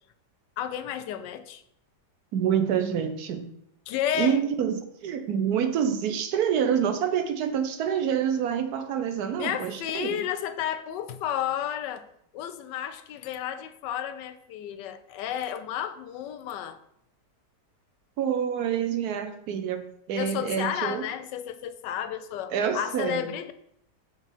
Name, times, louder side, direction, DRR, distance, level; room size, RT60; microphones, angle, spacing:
voice 1, 0.6-1.6 3.9-4.4 9.4-12.0 12.3-16.8 20.1-23.5, left 10 dB, 85° left, 11 dB, 1.2 m, -32 dB
voice 2, 2.3-3.5 4.1-10.2 18.2-19.8 20.1-21.0 22.5-23.3, right 8 dB, 70° right, 9 dB, 1.1 m, -27 dB
6.1 x 4.0 x 5.4 m, 0.72 s
omnidirectional pair, 1.9 m